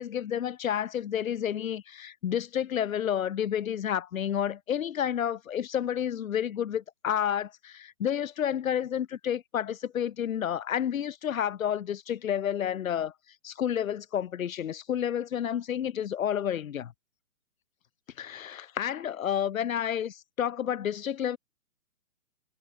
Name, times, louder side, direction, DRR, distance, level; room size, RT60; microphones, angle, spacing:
voice 1, 0.0-13.1 13.4-16.9 18.2-21.4, left 9 dB, 65° left, 1.0 m, -30 dB
hypercardioid pair, 155°, 44 cm